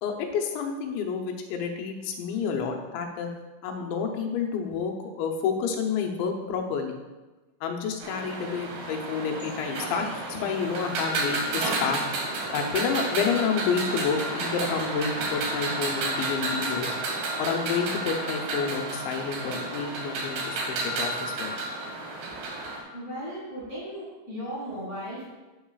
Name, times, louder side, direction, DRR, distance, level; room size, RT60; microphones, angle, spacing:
voice 1, 0.0-3.3 3.6-7.0 7.6-12.0 12.5-16.9 17.4-21.5, left 6 dB, 90° left, 3 dB, 3.3 m, -29 dB
sound 1, 8.0-22.8, right 2 dB, 65° right, 3.4 m, -31 dB
voice 2, 22.9-25.2, equal, 40° left, -7 dB, 1.0 m, -36 dB
11.5 x 8.9 x 2.4 m, 1.2 s
omnidirectional pair, 5.0 m